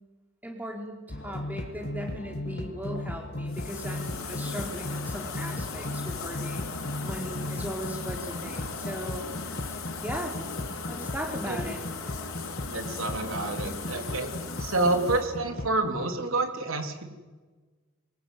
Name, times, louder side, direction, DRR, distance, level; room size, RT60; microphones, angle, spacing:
voice 1, 0.4-9.3 10.0-10.3 10.9-11.8, equal, 10° right, 1 dB, 4.3 m, -38 dB
sound 1, 1.1-15.8, left 1 dB, 50° left, 1.5 m, -37 dB
sound 2, 3.5-15.3, left 5 dB, 70° left, 4.3 m, -38 dB
voice 2, 12.7-14.3 14.6-17.0, right 2 dB, 70° right, 5 dB, 3.5 m, -28 dB
24.0 x 21.5 x 9.4 m, 1.3 s
head